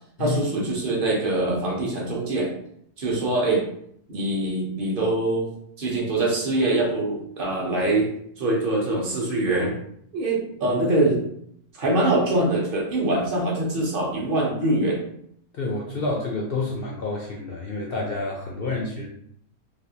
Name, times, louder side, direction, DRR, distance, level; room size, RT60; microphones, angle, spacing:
voice 1, 0.2-2.5 3.0-3.6 4.1-5.5 5.8-8.1 8.4-9.8 10.1-11.2 11.7-15.0, right 2 dB, 45° right, -2 dB, 0.9 m, -23 dB
voice 2, 15.5-19.1, left 3 dB, 65° left, 0 dB, 0.5 m, -29 dB
3.3 x 2.6 x 2.8 m, 0.70 s
omnidirectional pair, 1.5 m